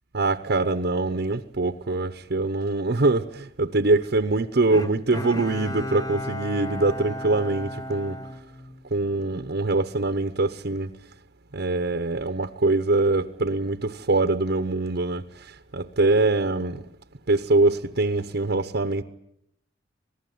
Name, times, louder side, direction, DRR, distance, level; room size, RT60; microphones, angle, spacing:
voice 1, 0.1-8.2 8.9-10.9 11.5-16.8 17.3-19.0, right 2 dB, 60° right, 0.9 m, -23 dB
Bowed string instrument, 4.7-9.2 9.7-9.8, left 1 dB, 20° left, 1.0 m, -35 dB
27.0 x 19.0 x 9.4 m
head